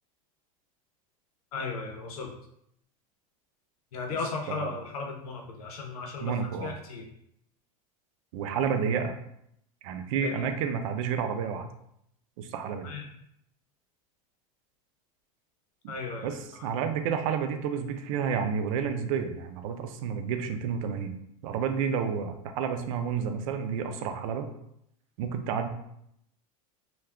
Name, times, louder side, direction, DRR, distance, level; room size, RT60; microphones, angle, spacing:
voice 1, 1.5-2.3 3.9-7.1 10.2-10.5 12.8-13.1 15.9-16.7, left 4 dB, 85° left, 2 dB, 0.7 m, -36 dB
voice 2, 6.2-6.7 8.3-9.2 9.8-11.7 12.4-12.9 16.2-21.1 21.4-24.5 25.2-25.7, right 7 dB, 65° right, 7 dB, 0.4 m, -30 dB
2.3 x 2.2 x 3.5 m, 0.74 s
supercardioid pair, 125°, 18 cm